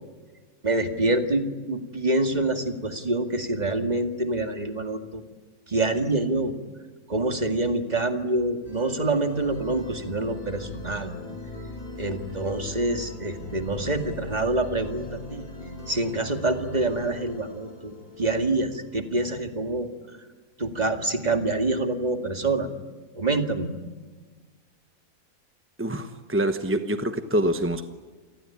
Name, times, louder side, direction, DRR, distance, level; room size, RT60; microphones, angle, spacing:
voice 1, 0.6-5.2 5.7-6.6 7.1-11.1 12.0-15.5 15.9-19.9 20.6-22.7 23.2-23.7, right 2 dB, 30° right, 6 dB, 2.2 m, -26 dB
sound 1, 8.6-20.1, left 1 dB, 25° left, 6.1 m, -40 dB
voice 2, 25.8-27.9, right 1 dB, 10° right, 8 dB, 0.9 m, -25 dB
28.5 x 19.5 x 10.0 m, 1.4 s
omnidirectional pair, 1.5 m